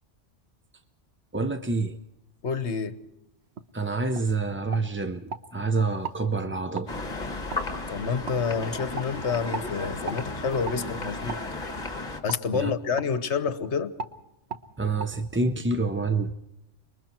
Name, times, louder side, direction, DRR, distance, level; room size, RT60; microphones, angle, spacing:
voice 1, 1.3-2.0 3.7-6.9 12.5-12.7 14.8-16.3, right 3 dB, 15° right, 0.5 m, -27 dB
voice 2, 2.4-3.0 7.9-11.4 12.2-13.9, left 5 dB, 70° left, 1.4 m, -28 dB
sound 1, 3.5-3.7 4.1-4.3 4.7-5.4 6.0-6.2 6.7-6.9 7.5-7.6 8.3-8.4 8.9-9.1 9.5-9.7 10.1-10.2 10.6-10.8 11.3-11.4 12.3-12.4 13.0-13.1 13.4-13.6 14.0-14.1 14.5-14.6 15.0-15.1, right 4 dB, 65° right, 1.3 m, -36 dB
sound 2, 6.9-12.2, left 2 dB, 35° left, 2.1 m, -34 dB
26.5 x 22.5 x 4.5 m
omnidirectional pair, 1.2 m